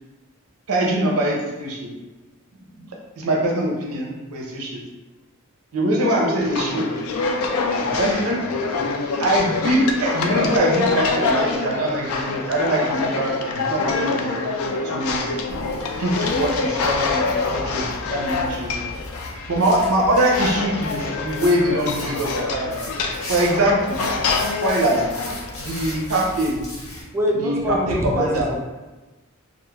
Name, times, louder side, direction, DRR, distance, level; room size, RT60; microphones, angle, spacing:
voice 1, 0.7-1.9 3.2-4.8 5.7-6.8 8.0-8.4 9.2-14.4 14.8-15.3 16.0-17.3 17.5-18.9 19.5-22.9 23.3-24.0 24.6-25.0 25.6-26.6 27.4-27.6 27.9-28.5, right 1 dB, 90° right, -1 dB, 0.6 m, -22 dB
voice 2, 6.0-7.1 7.5-9.1 11.2-11.9, equal, 30° left, -4 dB, 0.6 m, -35 dB
sound 1, 6.4-26.1, left 4 dB, 70° left, 0.3 m, -25 dB
sound 2, 15.5-27.0, left 1 dB, 90° left, 0.9 m, -37 dB
voice 3, 27.1-28.6, equal, 10° right, 0 dB, 0.3 m, -24 dB
2.2 x 2.0 x 3.1 m, 1.2 s
head